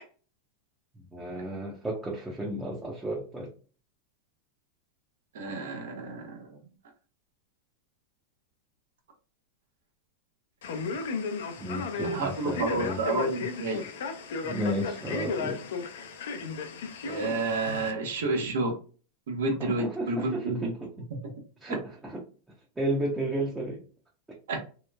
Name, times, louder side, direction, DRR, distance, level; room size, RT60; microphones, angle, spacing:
voice 1, 1.0-3.5 11.6-13.0 14.4-15.6 19.6-20.9 21.6-22.2 22.8-23.8, right 1 dB, 10° right, -3 dB, 0.6 m, -33 dB
voice 2, 5.3-6.6 12.1-13.9 17.0-18.8 19.3-20.7 24.5-24.6, right 2 dB, 85° right, 3 dB, 0.8 m, -30 dB
Male speech man speaking, 10.6-17.9, left 4 dB, 80° left, 0.5 m, -34 dB
2.9 x 2.0 x 2.2 m, 0.38 s
supercardioid pair, 140°, 0 cm